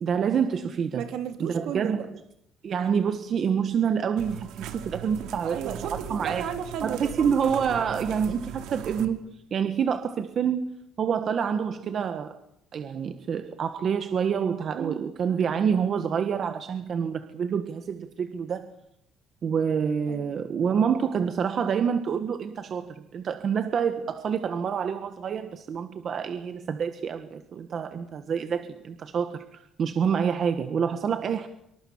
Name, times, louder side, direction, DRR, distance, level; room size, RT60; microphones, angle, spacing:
voice 1, 0.0-1.0 1.4-2.0 2.6-5.8 6.1-6.4 6.8-10.6 11.0-12.4 12.7-18.7 19.4-31.5, right 7 dB, 40° right, 9 dB, 1.4 m, -27 dB
voice 2, 0.9-2.1 5.4-7.2 14.7-15.0 20.1-20.3, right 8 dB, 60° right, 7 dB, 3.1 m, -34 dB
sound 1, 4.2-9.1, right 9 dB, 80° right, 2.7 m, -39 dB
26.0 x 23.5 x 7.2 m, 0.76 s
cardioid pair, 165°, 0 cm